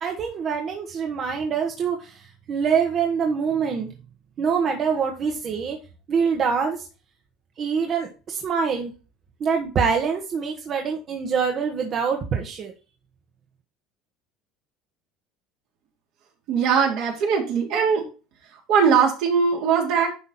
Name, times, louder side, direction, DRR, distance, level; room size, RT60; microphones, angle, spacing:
voice 1, 0.0-3.9 4.4-5.8 6.1-6.9 7.6-8.9 9.4-12.7, right 6 dB, 45° right, 2 dB, 1.6 m, -25 dB
voice 2, 16.5-18.0 18.7-20.1, right 6 dB, 70° right, -1 dB, 3.4 m, -20 dB
11.0 x 4.0 x 4.3 m, 0.33 s
supercardioid pair, 90°, 0 cm